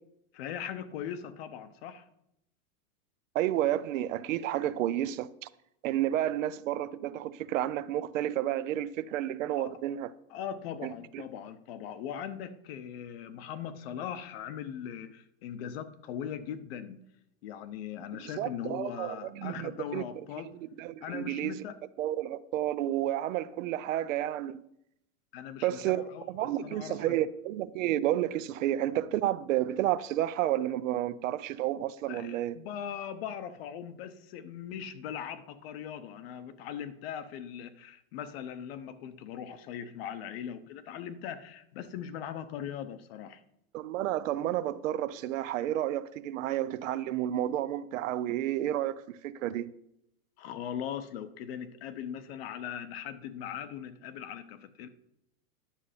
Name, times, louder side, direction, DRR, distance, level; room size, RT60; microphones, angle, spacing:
voice 1, 0.3-2.1 9.6-9.7 10.3-17.0 17.4-20.5 21.0-21.8 25.3-27.2 32.1-43.4 50.4-54.9, left 9 dB, 45° left, 0.8 m, -40 dB
voice 2, 3.3-5.3 5.8-10.1 10.8-11.2 18.2-20.0 20.8-21.6 22.0-24.6 25.6-26.0 26.3-32.6 43.7-49.7, right 13 dB, 60° right, 0.6 m, -31 dB
10.0 x 6.8 x 5.0 m
supercardioid pair, 160°, 44 cm